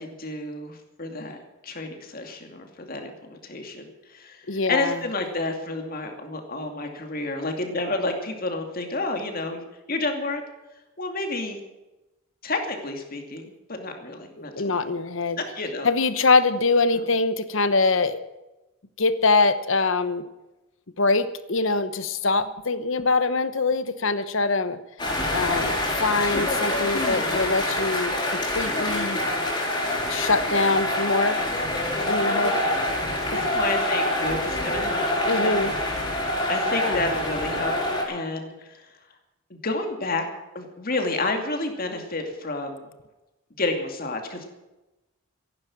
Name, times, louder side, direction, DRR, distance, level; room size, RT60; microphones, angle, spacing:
voice 1, 0.0-1.4 1.6-10.4 11.0-11.6 12.4-14.9 15.4-15.9 16.9-17.0 26.8-27.5 32.3-32.9 33.3-35.7 36.5-37.8 38.1-38.9 39.5-40.2 40.5-42.9 43.6-44.5, left 2 dB, 45° left, 4 dB, 2.5 m, -30 dB
voice 2, 4.5-5.0 14.5-15.4 15.8-18.2 19.0-20.2 21.0-24.8 25.3-25.8 26.0-28.2 28.5-29.2 30.1-31.4 32.1-32.6 35.3-35.7 36.7-37.0, left 3 dB, 65° left, 13 dB, 1.1 m, -23 dB
sound 1, 25.0-38.0, left 1 dB, 25° left, 4.7 m, -26 dB
15.0 x 11.5 x 7.3 m, 1.0 s
head